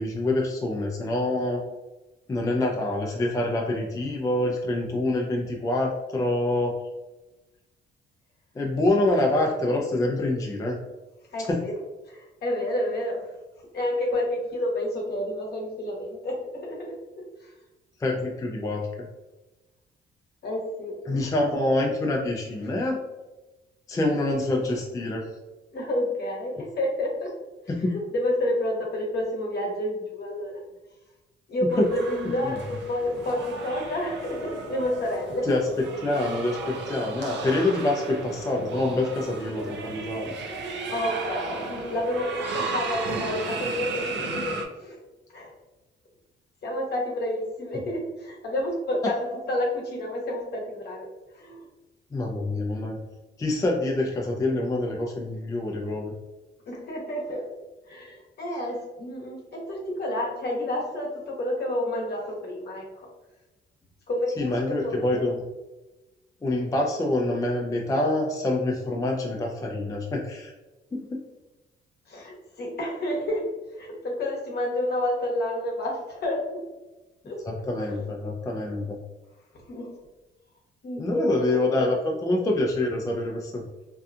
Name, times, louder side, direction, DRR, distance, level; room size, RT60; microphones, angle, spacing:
voice 1, 0.0-1.6 2.3-6.8 8.6-10.8 11.5-11.6 18.0-18.9 21.1-23.0 23.9-25.2 31.8-31.9 32.4-32.5 35.5-35.6 36.0-40.3 52.1-53.0 53.4-56.1 64.4-65.4 66.4-70.5 70.9-71.2 77.4-79.0 81.0-82.0 82.2-83.6, left 2 dB, 15° left, 0 dB, 0.4 m, -26 dB
voice 2, 11.3-11.7 12.0-13.3 13.7-17.5 20.4-21.3 25.7-27.3 27.8-30.6 31.5-35.4 40.9-45.0 45.3-45.5 46.6-51.1 51.3-51.7 56.7-57.5 57.9-63.1 64.1-65.3 72.1-76.6 77.2-77.4 79.7-80.0 80.8-81.9, left 1 dB, 55° left, -2 dB, 0.9 m, -30 dB
sound 1, 31.7-44.6, right 4 dB, 65° right, 0.5 m, -35 dB
2.6 x 2.3 x 2.3 m, 1.1 s
cardioid pair, 90°, 20 cm